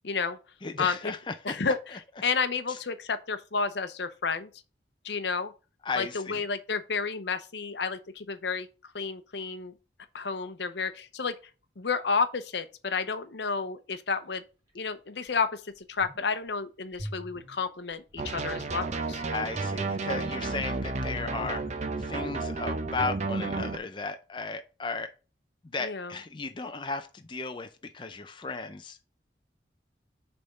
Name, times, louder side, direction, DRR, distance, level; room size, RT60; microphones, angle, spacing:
voice 1, 0.0-0.4 0.8-1.1 1.4-1.8 2.2-4.5 5.0-5.5 6.0-8.7 8.9-9.7 10.1-11.3 11.8-14.4 14.7-19.2 25.8-26.1, left 5 dB, 70° left, 0.7 m, -31 dB
voice 2, 0.6-1.6 1.9-2.0 2.7-2.8 5.8-6.4 19.3-25.1 25.6-29.0, left 4 dB, 25° left, 0.5 m, -35 dB
sound 1, 14.7-14.8 15.3-15.4 15.7-16.5 16.9-19.2 19.4-19.5, equal, 15° right, 2.4 m, -44 dB
sound 2, 18.2-23.8, right 3 dB, 40° right, 0.7 m, -32 dB
6.7 x 3.5 x 5.3 m
head